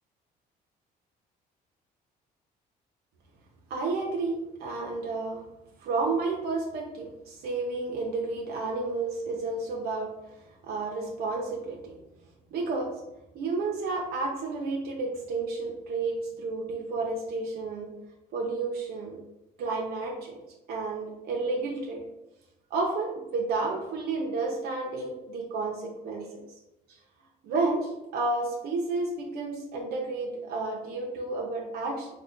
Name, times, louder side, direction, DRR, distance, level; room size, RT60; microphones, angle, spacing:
voice 1, 3.7-5.4 5.8-10.1 10.7-11.9 12.5-12.9 13.3-17.9 18.3-19.2 19.6-20.4 20.7-22.0 22.7-26.4 27.4-32.1, right 3 dB, 70° right, 0 dB, 0.6 m, -31 dB
3.2 x 2.1 x 3.8 m, 0.94 s
cardioid pair, 110°, 17 cm